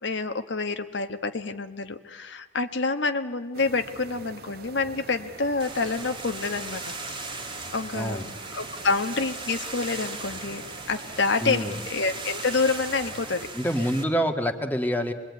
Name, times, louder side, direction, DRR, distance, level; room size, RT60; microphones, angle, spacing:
voice 1, 0.0-6.9 7.7-8.2 8.5-10.6 10.9-13.5, left 3 dB, 70° left, 7 dB, 1.3 m, -27 dB
sound 1, 3.5-13.5, right 3 dB, 55° right, 1.3 m, -45 dB
sound 2, 5.6-14.0, right 3 dB, 25° right, 2.1 m, -38 dB
voice 2, 7.9-8.3 11.4-11.7 13.5-15.1, equal, 10° left, 5 dB, 1.6 m, -26 dB
26.5 x 21.5 x 9.5 m, 1.3 s
head